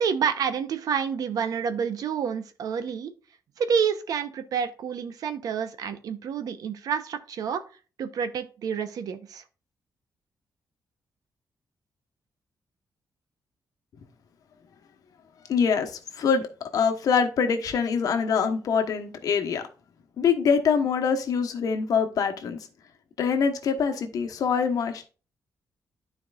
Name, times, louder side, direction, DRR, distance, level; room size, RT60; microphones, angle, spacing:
voice 1, 0.0-3.1 3.6-7.6 8.0-9.4, right 7 dB, 75° right, 0.8 m, -28 dB
voice 2, 15.5-19.6 20.2-22.6 23.2-25.1, left 6 dB, 70° left, 1.1 m, -24 dB
12.0 x 4.6 x 2.4 m
cardioid pair, 130°, 6 cm